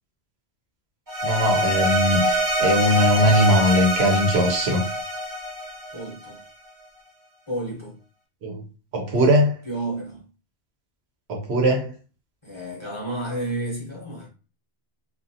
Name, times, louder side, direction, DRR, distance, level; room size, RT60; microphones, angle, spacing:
sound 1, 1.1-6.4, equal, 25° right, 0.5 m, -24 dB
voice 1, 1.2-4.8 8.4-8.6 8.9-9.6 11.3-11.9, equal, 75° right, 1.0 m, -20 dB
voice 2, 5.9-6.4 7.5-8.0 9.2-9.3 9.6-10.2 12.4-14.3, right 1 dB, 30° left, 0.8 m, -31 dB
2.5 x 2.4 x 2.7 m
omnidirectional pair, 1.1 m